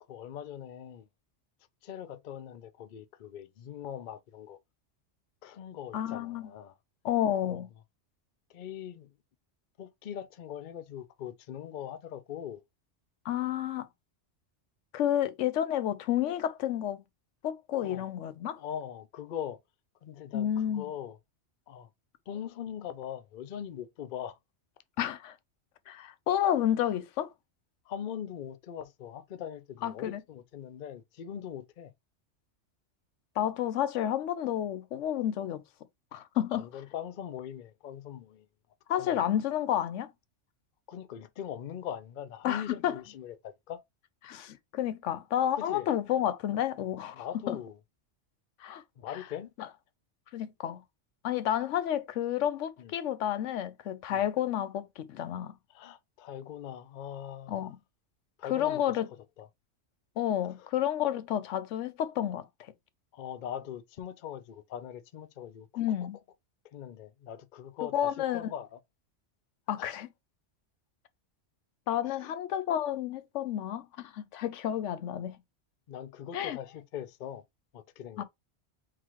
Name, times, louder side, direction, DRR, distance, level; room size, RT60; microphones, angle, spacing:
voice 1, 0.1-1.1 1.8-4.6 5.4-6.7 7.5-7.6 8.5-9.1 9.8-12.6 17.8-18.1 18.6-19.6 20.0-21.2 21.7-21.9 22.3-24.4 27.9-31.9 36.5-38.5 38.9-39.2 40.9-43.8 45.5-45.9 47.1-47.8 49.0-49.5 52.8-52.9 54.1-54.3 55.7-57.7 58.4-59.0 59.4-59.5 60.6-60.7 63.1-65.7 66.7-68.8 69.8-70.0 72.0-72.3 75.9-77.4 77.7-78.2, left 9 dB, 55° left, 0.6 m, -41 dB
voice 2, 5.9-6.5 7.0-7.7 13.2-13.9 14.9-17.0 17.4-18.6 20.3-20.9 25.0-25.3 25.9-27.3 29.8-30.2 33.4-35.6 36.1-36.7 38.9-40.1 42.4-42.9 44.2-47.6 48.6-48.8 50.3-50.8 51.2-55.5 57.5-57.8 58.5-59.1 60.2-62.5 65.8-66.2 67.9-68.4 69.7-70.1 71.9-75.4 76.3-76.6 78.2-78.3, left 11 dB, 85° left, 0.9 m, -30 dB
4.5 x 3.9 x 3.0 m
omnidirectional pair, 1.2 m